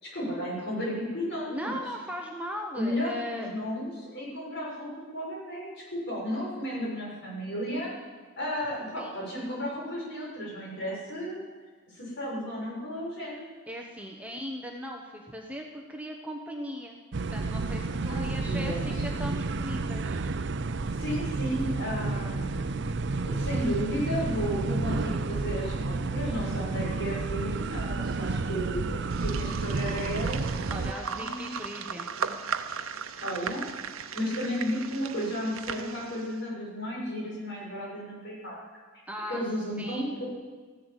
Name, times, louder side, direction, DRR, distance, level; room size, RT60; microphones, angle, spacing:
voice 1, 0.0-1.8 2.8-7.9 8.4-11.4 11.9-13.4 18.1-19.0 20.9-31.5 33.2-33.7 34.1-38.6 39.3-40.3, equal, 55° left, -4 dB, 6.7 m, -33 dB
voice 2, 1.5-3.5 9.0-9.2 13.7-17.0 17.3-20.3 30.7-32.4 39.1-39.4 39.8-40.1, equal, 5° right, 1 dB, 1.1 m, -38 dB
sound 1, 17.1-30.9, right 3 dB, 55° right, 0.6 m, -31 dB
sound 2, 29.1-36.4, right 6 dB, 80° right, 0.8 m, -37 dB
15.0 x 11.5 x 8.1 m, 1.4 s
head